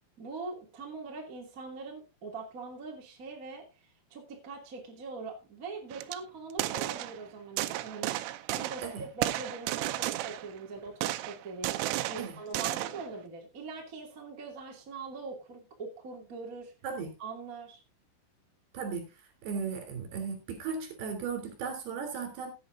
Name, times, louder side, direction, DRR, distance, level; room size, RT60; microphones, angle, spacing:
voice 1, 0.2-3.6 4.1-8.1 8.5-16.7 17.2-17.8, right 4 dB, 30° right, 0 dB, 1.6 m, -42 dB
sound 1, 5.9-6.2 6.5-7.2 7.6-8.9 9.2-10.6 11.0-13.1, right 16 dB, 80° right, 3.2 m, -33 dB
voice 2, 18.7-19.1 19.4-22.5, right 5 dB, 55° right, 4 dB, 5.0 m, -36 dB
16.5 x 9.0 x 2.7 m, 0.27 s
omnidirectional pair, 6.0 m